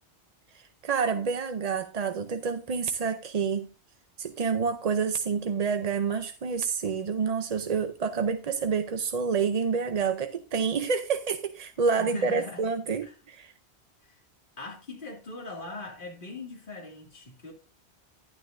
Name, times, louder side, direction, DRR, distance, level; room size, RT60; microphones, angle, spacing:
voice 1, 0.5-3.7 4.2-13.5, right 5 dB, 45° right, 0.6 m, -28 dB
voice 2, 12.0-12.6 13.0-13.1 14.0-14.2 14.6-17.5, left 3 dB, 50° left, 2.5 m, -41 dB
11.5 x 11.5 x 2.6 m
omnidirectional pair, 1.1 m